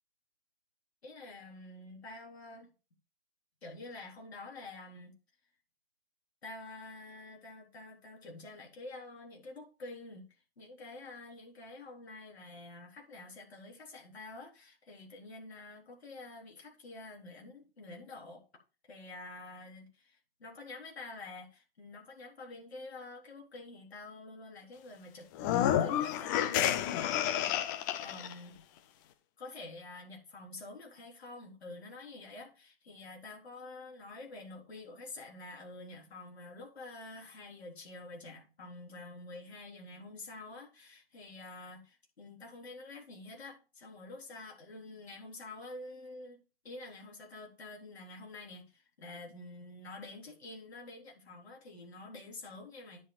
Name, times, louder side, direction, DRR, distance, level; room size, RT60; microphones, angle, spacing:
voice 1, 1.0-2.7 3.6-5.1 6.4-10.2 10.6-18.4 18.9-28.6 29.4-53.0, left 2 dB, 90° left, 4.1 m, -48 dB
sound 1, 25.3-28.3, left 11 dB, 20° left, 0.5 m, -30 dB
10.0 x 9.4 x 2.4 m
hypercardioid pair, 145°, 31 cm